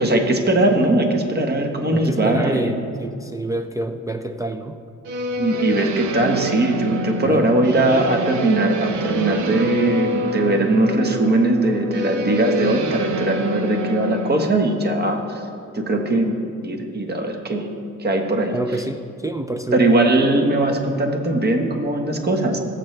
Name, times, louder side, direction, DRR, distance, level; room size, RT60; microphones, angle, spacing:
voice 1, 0.0-2.7 5.4-15.4 15.7-16.3 16.6-17.7 18.0-18.5 19.7-22.6, right 2 dB, 35° right, 4 dB, 1.4 m, -20 dB
voice 2, 1.9-4.8 7.2-7.5 18.5-19.9, right 1 dB, 10° right, 4 dB, 0.4 m, -27 dB
sound 1, 5.1-14.5, right 1 dB, 80° right, 0.9 m, -26 dB
18.0 x 7.8 x 3.3 m, 2.4 s
cardioid pair, 90°, 30 cm